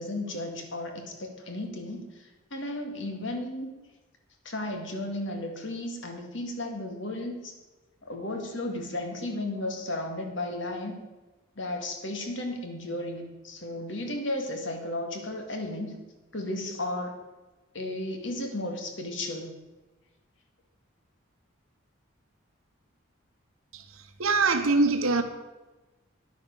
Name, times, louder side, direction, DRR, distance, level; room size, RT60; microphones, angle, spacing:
voice 1, 0.0-3.7 4.4-7.5 8.0-11.0 11.6-16.0 16.3-17.2 17.7-19.6, left 1 dB, 65° left, 3 dB, 2.0 m, -34 dB
voice 2, 23.7-25.2, right 3 dB, 90° right, 7 dB, 1.1 m, -24 dB
10.5 x 9.1 x 6.4 m, 1.1 s
head